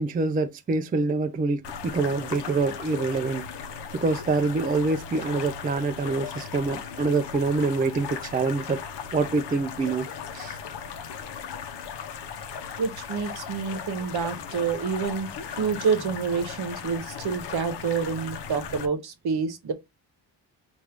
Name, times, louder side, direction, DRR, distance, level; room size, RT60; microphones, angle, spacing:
voice 1, 0.0-3.4 3.9-8.8 9.1-10.1 10.3-10.6, right 3 dB, 20° right, 0.3 m, -26 dB
sound 1, 1.6-18.9, left 7 dB, 65° left, 0.8 m, -37 dB
voice 2, 12.8-19.7, right 5 dB, 60° right, 1.0 m, -28 dB
4.5 x 2.5 x 3.4 m
cardioid pair, 90°, 44 cm